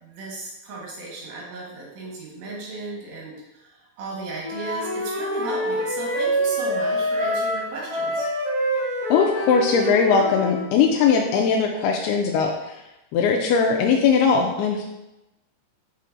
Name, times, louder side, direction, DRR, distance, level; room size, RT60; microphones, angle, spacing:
voice 1, 0.0-8.3, right 2 dB, 75° right, -4 dB, 3.5 m, -35 dB
Wind instrument woodwind instrument, 4.4-10.7, equal, 30° right, 0.6 m, -26 dB
voice 2, 9.1-12.8 13.1-14.8, left 5 dB, 85° left, 1 dB, 2.2 m, -20 dB
6.7 x 5.7 x 2.5 m, 0.96 s
omnidirectional pair, 5.0 m